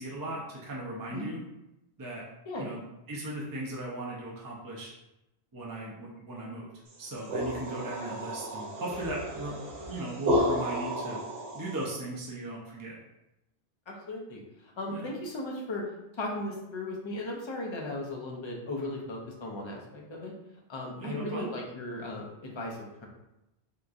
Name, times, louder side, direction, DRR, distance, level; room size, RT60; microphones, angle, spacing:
voice 1, 0.0-1.4 2.0-2.2 2.6-2.8 3.1-4.9 5.5-6.7 7.0-9.5 9.9-11.2 11.5-13.0 14.9-15.1 21.0-21.5, right 2 dB, 35° right, -4 dB, 0.3 m, -37 dB
sound 1, 6.9-11.9, equal, 70° right, 1.0 m, -32 dB
voice 2, 13.9-15.8 16.1-20.3 20.7-23.1, left 1 dB, 35° left, -1 dB, 0.5 m, -37 dB
3.5 x 2.9 x 2.5 m, 0.92 s
omnidirectional pair, 1.1 m